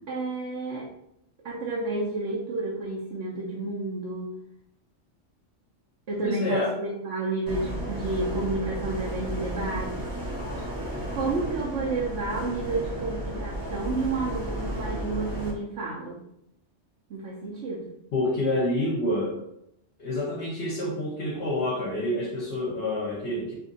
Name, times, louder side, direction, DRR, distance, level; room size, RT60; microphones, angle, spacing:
voice 1, 0.1-0.9 1.4-4.3 6.1-10.0 11.1-16.2 17.1-17.8, right 3 dB, 75° right, -5 dB, 1.0 m, -31 dB
voice 2, 6.2-6.7 18.1-19.4 20.0-23.5, left 1 dB, 60° left, -4 dB, 0.9 m, -28 dB
sound 1, 7.5-15.5, right 1 dB, 25° right, 0.5 m, -33 dB
2.7 x 2.6 x 3.8 m, 0.79 s
omnidirectional pair, 1.2 m